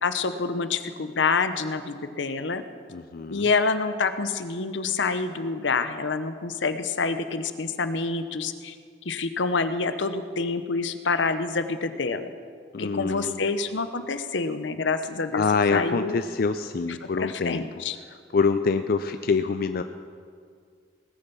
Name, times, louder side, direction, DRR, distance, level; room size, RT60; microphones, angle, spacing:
voice 1, 0.0-2.6 3.3-8.7 9.0-12.3 12.8-15.4 15.7-16.2 17.2-18.0, left 4 dB, 80° left, 10 dB, 0.8 m, -27 dB
voice 2, 2.9-3.5 12.7-13.4 15.3-17.7 18.1-19.8, left 4 dB, 55° left, 9 dB, 0.4 m, -25 dB
19.0 x 6.9 x 6.9 m, 2.1 s
head